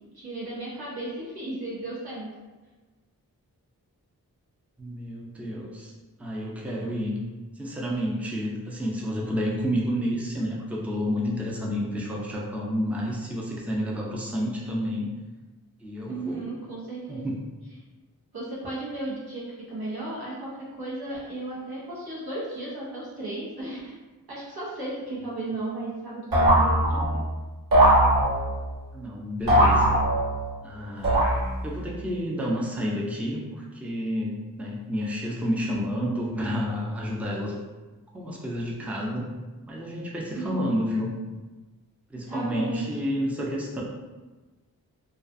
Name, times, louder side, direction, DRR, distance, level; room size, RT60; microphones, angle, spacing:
voice 1, 0.1-2.3 16.1-17.2 18.3-23.9 24.3-27.2 40.3-40.7 42.3-42.9, right 2 dB, 85° right, -7 dB, 1.0 m, -35 dB
voice 2, 4.8-5.9 6.2-7.2 7.6-15.1 15.8-16.4 17.1-17.5 28.9-30.0 30.6-31.2 31.6-37.6 38.1-39.3 39.7-41.1 42.1-43.8, equal, 5° right, -3 dB, 0.5 m, -30 dB
sound 1, 26.3-27.3 27.7-28.7 29.5-30.5 31.0-31.8, right 1 dB, 65° right, 1.1 m, -20 dB
2.3 x 2.3 x 2.5 m, 1.2 s
cardioid pair, 40°, 37 cm